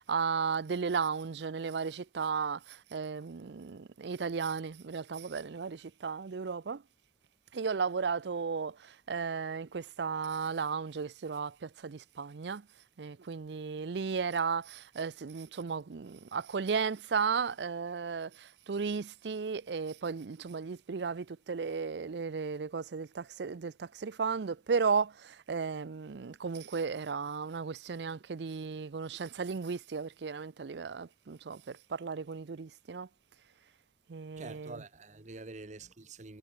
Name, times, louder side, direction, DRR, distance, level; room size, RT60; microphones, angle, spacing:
voice 1, 0.0-6.8 7.5-12.7 13.0-33.1 34.1-34.8, right 5 dB, 70° right, 0.5 m, -35 dB
voice 2, 34.4-36.4, right 3 dB, 45° right, 1.1 m, -46 dB
head